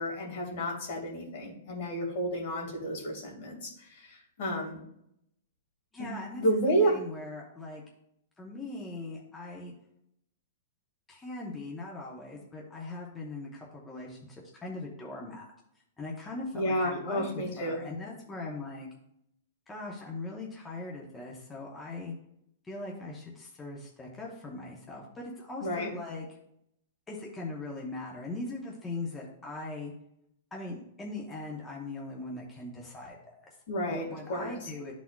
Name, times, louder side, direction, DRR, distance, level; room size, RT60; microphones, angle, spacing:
voice 1, 0.0-4.8 6.0-7.0 16.5-17.8 25.6-25.9 33.7-34.5, right 1 dB, 55° left, 0 dB, 2.1 m, -31 dB
voice 2, 5.9-7.8 8.4-9.7 11.1-15.5 16.0-18.9 19.7-22.1 22.6-26.3 27.1-29.9 30.5-33.6 33.9-34.9, left 2 dB, 10° left, -3 dB, 0.9 m, -40 dB
12.5 x 4.1 x 2.4 m, 0.76 s
hypercardioid pair, 155°, 0 cm